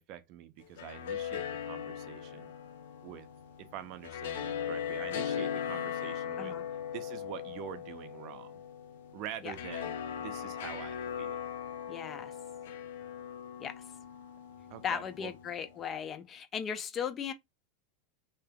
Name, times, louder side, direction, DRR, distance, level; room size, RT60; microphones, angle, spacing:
voice 1, 0.0-2.5 3.0-3.3 3.6-6.6 6.9-8.6 9.1-11.4 14.7-15.3, right 11 dB, 55° right, 0.5 m, -45 dB
sound 1, 0.6-15.8, left 9 dB, 80° left, 0.6 m, -39 dB
voice 2, 11.9-12.3 13.6-13.8 14.8-17.3, left 8 dB, 30° left, 0.5 m, -37 dB
3.3 x 2.8 x 2.3 m
hypercardioid pair, 110°, 0 cm